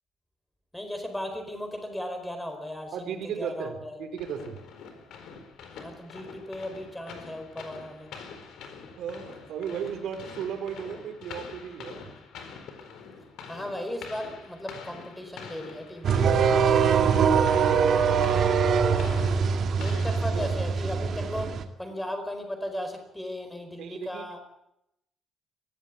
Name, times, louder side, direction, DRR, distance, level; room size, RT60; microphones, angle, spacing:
voice 1, 0.7-4.0 5.8-8.2 13.5-16.1 19.8-21.5 21.8-24.4, left 1 dB, 5° left, 6 dB, 4.5 m, -36 dB
voice 2, 2.9-4.6 9.0-12.1 16.6-18.4 19.3-19.8 20.3-20.5 23.8-24.4, right 7 dB, 75° right, 6 dB, 4.0 m, -36 dB
sound 1, 4.2-20.9, left 5 dB, 80° left, 4.3 m, -45 dB
sound 2, 16.0-21.6, right 6 dB, 55° right, 2.3 m, -23 dB
23.0 x 16.5 x 8.5 m, 0.82 s
cardioid pair, 155°, 0 cm